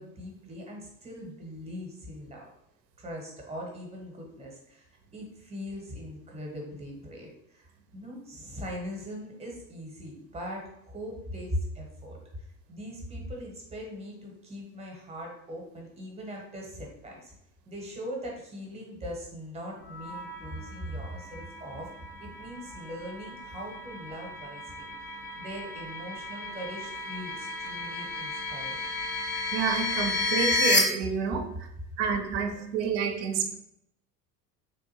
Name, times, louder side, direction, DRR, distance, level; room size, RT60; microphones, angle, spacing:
voice 1, 0.0-2.5 3.0-4.9 5.1-17.3 17.6-24.9 25.4-28.8 31.5-31.6 32.2-32.7 33.2-33.3, equal, 15° right, -1 dB, 0.8 m, -40 dB
sound 1, 19.9-30.8, left 3 dB, 20° left, 0.4 m, -33 dB
voice 2, 29.5-31.5 32.0-33.5, right 6 dB, 50° right, 6 dB, 0.5 m, -29 dB
3.5 x 2.5 x 2.7 m, 0.77 s
figure-of-eight pair, 70°, 47 cm